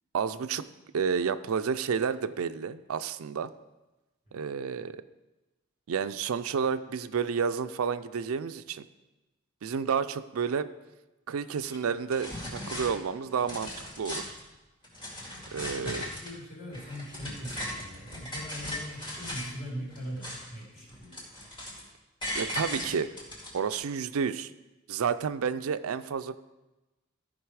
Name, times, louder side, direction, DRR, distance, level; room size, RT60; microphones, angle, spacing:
voice 1, 0.1-0.7 0.9-3.5 4.3-5.0 5.9-8.9 9.6-10.7 11.3-13.7 14.0-14.3 15.5-16.1 22.3-23.1 23.5-24.5 24.9-26.4, right 6 dB, 80° right, 13 dB, 0.4 m, -30 dB
sound 1, 11.6-11.8 12.1-12.9 13.3-14.4 14.8-16.3 16.7-19.5 19.9-20.6 20.9-21.9 22.2-23.7, left 1 dB, 25° left, 2.4 m, -38 dB
voice 2, 15.9-21.2, equal, 40° left, -4 dB, 3.3 m, -41 dB
14.0 x 5.3 x 4.7 m, 1.1 s
head